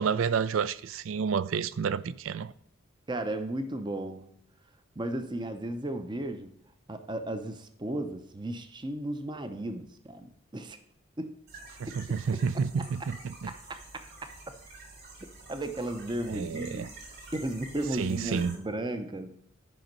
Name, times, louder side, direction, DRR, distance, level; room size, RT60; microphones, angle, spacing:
voice 1, 0.0-2.5 11.8-13.5 16.3-16.9 18.0-18.6, right 6 dB, 70° right, 0.4 m, -30 dB
voice 2, 3.1-4.3 5.0-6.5 6.9-10.8 11.2-11.4 11.9-12.0 12.3-12.4 12.8-12.9 13.5-13.6 13.9-14.3 15.5-16.9 17.3-19.4, right 1 dB, 20° right, 0.6 m, -35 dB
sound 1, 11.5-18.5, right 2 dB, 50° right, 3.0 m, -48 dB
11.0 x 5.2 x 5.3 m
head